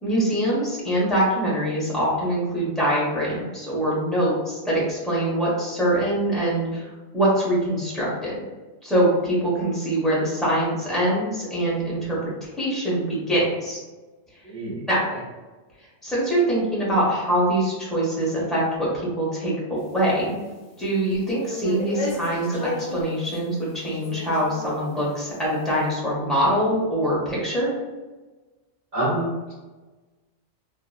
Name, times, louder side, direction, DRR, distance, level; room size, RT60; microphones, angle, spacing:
voice 1, 0.0-6.9 7.1-8.4 8.8-12.2 12.4-13.8 14.9-15.0 16.0-20.4 20.8-27.7, right 1 dB, ahead, -8 dB, 0.8 m, -23 dB
voice 2, 14.4-14.8 28.9-29.5, right 1 dB, 35° right, -12 dB, 1.0 m, -26 dB
sound 1, 19.9-20.5 21.1-23.4 23.9-24.8, left 2 dB, 75° left, 0.3 m, -33 dB
2.7 x 2.6 x 2.3 m, 1.2 s
omnidirectional pair, 1.3 m